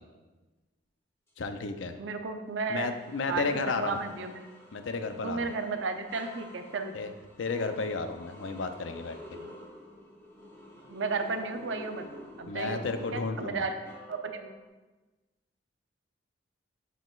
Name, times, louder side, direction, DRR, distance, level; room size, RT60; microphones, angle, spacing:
voice 1, 1.4-1.9 2.7-4.0 4.7-5.5 6.9-7.1 7.4-9.2 12.5-13.7, left 4 dB, 75° left, 8 dB, 0.5 m, -32 dB
sound 1, 1.9-2.1 2.7-14.7, left 1 dB, 15° left, 1.1 m, -50 dB
voice 2, 2.0-2.9 3.3-4.5 5.1-7.0 9.3-9.5 10.9-12.0 12.4-12.9 13.1-13.7 14.1-14.5, right 4 dB, 70° right, 6 dB, 0.5 m, -33 dB
7.0 x 5.9 x 2.4 m, 1.2 s
head